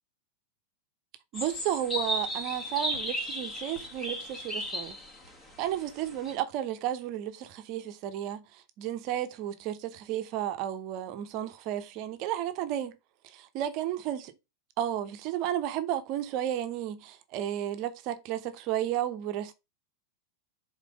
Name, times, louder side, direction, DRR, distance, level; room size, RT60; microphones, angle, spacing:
sound 1, 1.3-6.3, equal, 20° left, 1.7 m, -35 dB
voice 1, 1.3-5.0 5.6-12.9 13.2-14.3 14.8-19.5, right 11 dB, 40° right, 0.9 m, -33 dB
5.1 x 4.0 x 5.1 m
figure-of-eight pair, 90°, 0 cm